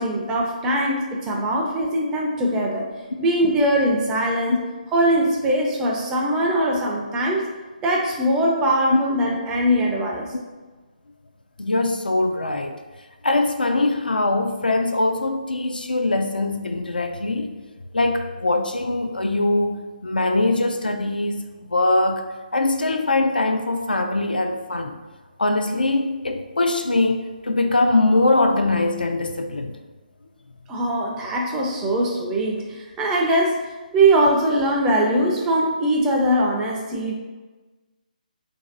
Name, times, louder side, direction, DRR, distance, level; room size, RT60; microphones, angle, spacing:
voice 1, 0.0-2.9 3.2-4.6 4.9-7.4 7.8-10.3 30.7-37.2, right 1 dB, 10° right, -2 dB, 0.4 m, -21 dB
voice 2, 11.6-12.8 13.2-17.6 17.9-25.0 25.4-29.8 36.9-37.1, left 2 dB, 80° left, 5 dB, 0.4 m, -22 dB
3.0 x 2.6 x 3.8 m, 1.3 s
figure-of-eight pair, 145°, 5 cm